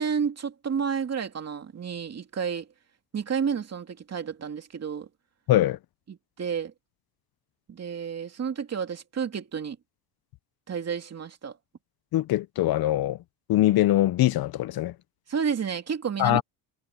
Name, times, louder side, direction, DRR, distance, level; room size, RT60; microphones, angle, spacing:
voice 1, 0.0-2.7 3.1-5.1 6.1-6.7 7.7-9.8 10.7-11.6 15.3-16.4, right 6 dB, 35° right, 2.8 m, -30 dB
voice 2, 5.5-5.8 12.1-13.2 13.5-14.9 16.2-16.4, left 14 dB, 55° left, 0.6 m, -22 dB
cardioid pair, 125°, 43 cm